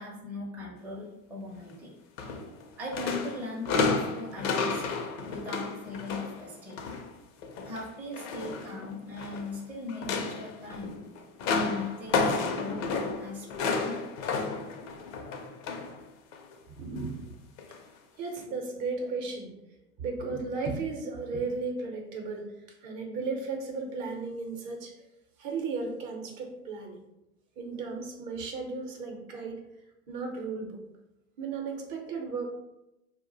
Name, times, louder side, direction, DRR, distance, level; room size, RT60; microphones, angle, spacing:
voice 1, 0.0-1.9 2.8-4.8 5.3-6.8 7.6-10.9 11.5-14.0, left 3 dB, 5° right, -4 dB, 0.5 m, -39 dB
sound 1, 2.2-2.6 2.9-7.1 7.4-9.5 9.9-16.0 16.3-16.5 17.6-17.8 18.4-18.5, left 4 dB, 65° left, 0.6 m, -32 dB
voice 2, 16.7-17.3 18.2-19.5 20.0-22.5 22.8-24.9 25.4-27.0 27.6-29.6 30.1-30.8 31.4-32.5, right 4 dB, 45° right, 3 dB, 0.7 m, -35 dB
2.3 x 2.1 x 3.8 m, 0.91 s
hypercardioid pair, 95°, 44 cm